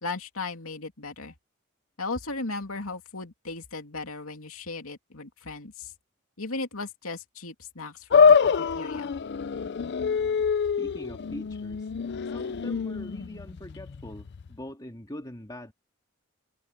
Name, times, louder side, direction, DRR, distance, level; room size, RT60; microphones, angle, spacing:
voice 1, 0.0-1.3 2.0-5.9 6.4-9.1, left 3 dB, 70° left, 2.9 m, -36 dB
sound 1, 8.1-14.6, left 6 dB, 50° left, 0.4 m, -25 dB
voice 2, 10.8-11.9 12.2-15.7, left 1 dB, 20° left, 2.1 m, -42 dB
head